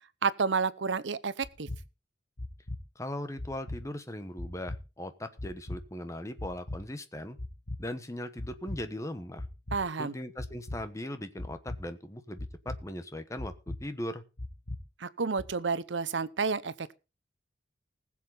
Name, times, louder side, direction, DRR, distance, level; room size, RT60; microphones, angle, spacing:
voice 1, 0.2-1.7 9.7-10.1 15.0-16.9, right 5 dB, 75° right, 0.7 m, -30 dB
sound 1, 1.4-1.8 2.4-2.8 3.4-3.8 4.4-4.8 5.4-5.8 6.4-6.8 7.4-7.8 8.4-8.8 9.4-9.8 10.4-10.8 11.4-11.8 12.4-12.8 13.4-13.8 14.4-14.8 15.4-15.5, left 1 dB, 60° left, 2.4 m, -38 dB
voice 2, 2.9-7.4 7.8-9.4 10.0-14.2, left 1 dB, 15° left, 1.1 m, -39 dB
20.0 x 7.5 x 3.9 m
head